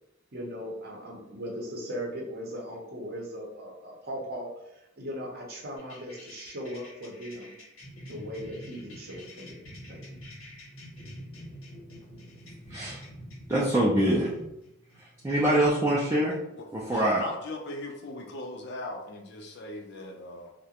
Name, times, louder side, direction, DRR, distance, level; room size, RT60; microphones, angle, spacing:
voice 1, 0.3-7.5 8.1-9.6 9.9-10.0, equal, 50° right, -2 dB, 0.7 m, -38 dB
sound 1, 5.8-16.3, equal, 80° left, 0.9 m, -46 dB
voice 2, 12.7-13.0 13.5-14.3 15.0-16.4 16.7-17.2, right 1 dB, 15° right, -6 dB, 0.3 m, -24 dB
voice 3, 16.6-20.5, left 2 dB, 55° left, 1 dB, 0.4 m, -39 dB
2.4 x 2.1 x 2.8 m, 0.82 s
head